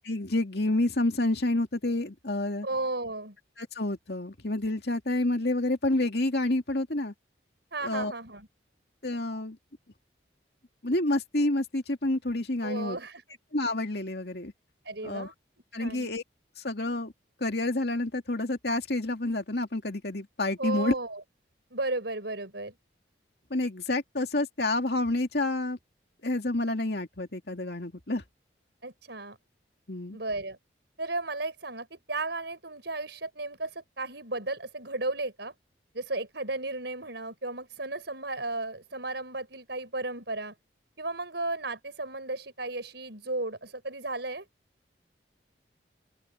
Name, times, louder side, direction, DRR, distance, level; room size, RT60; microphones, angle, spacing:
voice 1, 0.1-2.7 3.6-7.1 7.8-8.1 9.0-9.6 10.8-13.0 13.5-14.5 15.0-15.3 15.7-16.2 16.6-17.1 17.4-20.9 23.5-25.8 26.2-28.2 29.9-30.2, left 2 dB, 60° left, 2.5 m, -29 dB
voice 2, 2.6-3.4 7.7-8.5 12.6-13.2 14.8-15.3 15.8-16.1 20.6-21.2 21.7-22.8 28.8-29.4 30.1-30.6 31.0-35.5 35.9-40.5 41.0-44.4, right 2 dB, 70° right, 5.4 m, -34 dB
open air
head